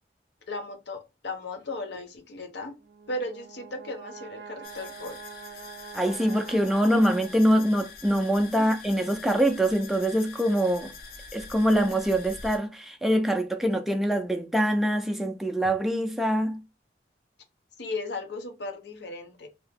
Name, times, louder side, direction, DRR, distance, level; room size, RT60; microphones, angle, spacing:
voice 1, 0.5-2.8 3.1-5.2 8.6-8.7 17.8-19.5, left 2 dB, 85° left, 0.8 m, -36 dB
Brass instrument, 2.8-7.8, right 6 dB, 70° right, 0.5 m, -45 dB
sound 1, 4.6-12.6, left 4 dB, 55° left, 0.6 m, -45 dB
voice 2, 5.9-10.9 11.3-16.6, equal, ahead, 0.3 m, -24 dB
2.8 x 2.7 x 3.4 m
head